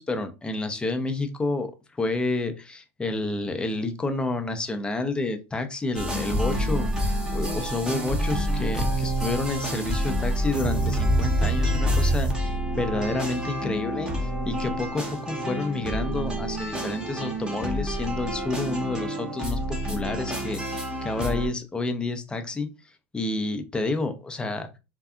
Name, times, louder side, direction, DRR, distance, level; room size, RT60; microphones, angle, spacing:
voice 1, 0.0-1.7 2.0-22.7 23.1-24.7, left 2 dB, 10° left, 7 dB, 0.4 m, -29 dB
sound 1, 5.9-21.5, equal, 10° right, 0.8 m, -27 dB
2.6 x 2.3 x 2.3 m, 0.28 s
supercardioid pair, 115°, 8 cm